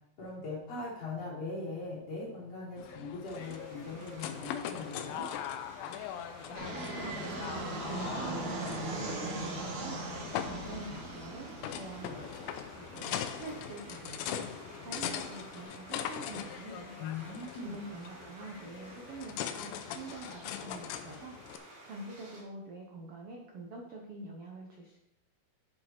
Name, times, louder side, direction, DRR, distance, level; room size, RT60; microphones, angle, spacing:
voice 1, 0.2-5.3 17.0-17.7, left 3 dB, 45° left, -7 dB, 4.3 m, -40 dB
sound 1, 2.8-21.6, left 10 dB, 80° left, 2.4 m, -41 dB
sound 2, 3.3-22.4, right 1 dB, 45° right, 3.7 m, -53 dB
voice 2, 6.5-7.5 7.9-12.3 12.7-14.5 14.8-17.0 17.6-21.4 21.8-25.0, right 2 dB, 80° right, 1 dB, 1.3 m, -46 dB
Fixed-wing aircraft airplane, 6.6-15.6, right 2 dB, 60° right, 2.8 m, -40 dB
8.6 x 7.5 x 4.3 m, 0.86 s
omnidirectional pair, 4.2 m